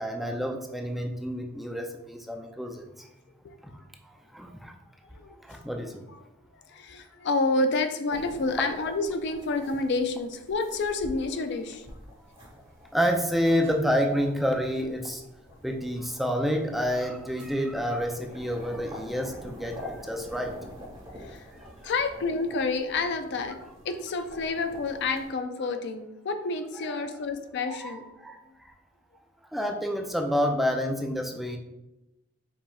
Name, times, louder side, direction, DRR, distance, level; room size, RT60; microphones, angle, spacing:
voice 1, 0.0-3.1 4.1-4.7 5.4-6.0 12.9-15.2 15.6-20.5 27.7-28.0 28.2-28.7 29.5-31.6, equal, ahead, 2 dB, 0.4 m, -29 dB
voice 2, 5.1-5.6 6.1-6.2 6.6-11.9 20.2-20.3 21.2-21.5 21.8-23.6 23.8-28.0, left 3 dB, 60° left, 8 dB, 0.4 m, -29 dB
sound 1, 8.1-25.3, left 1 dB, 25° right, 1.2 m, -46 dB
4.9 x 4.1 x 2.3 m, 0.95 s
head